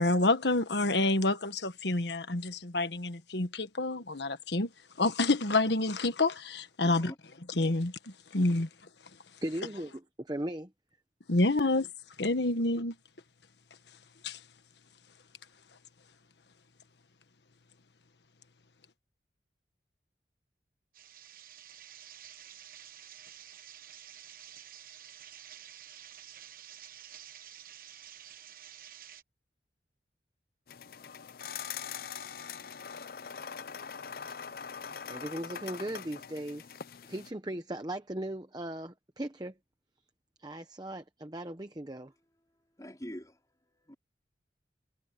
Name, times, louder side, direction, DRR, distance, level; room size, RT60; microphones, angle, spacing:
voice 1, 0.0-7.1 7.5-9.4 11.3-11.9 12.2-13.0 13.9-14.5, left 2 dB, 75° left, 1.4 m, -29 dB
voice 2, 6.8-7.2 42.8-44.0, equal, 20° left, 4.2 m, -45 dB
voice 3, 9.4-9.9 10.2-10.7 35.1-36.7 37.1-39.6 40.4-42.1, right 1 dB, 20° right, 0.9 m, -38 dB
sound 1, 20.9-29.2, right 10 dB, 50° right, 1.2 m, -50 dB
sound 2, 30.7-37.3, left 7 dB, 55° left, 0.5 m, -42 dB
head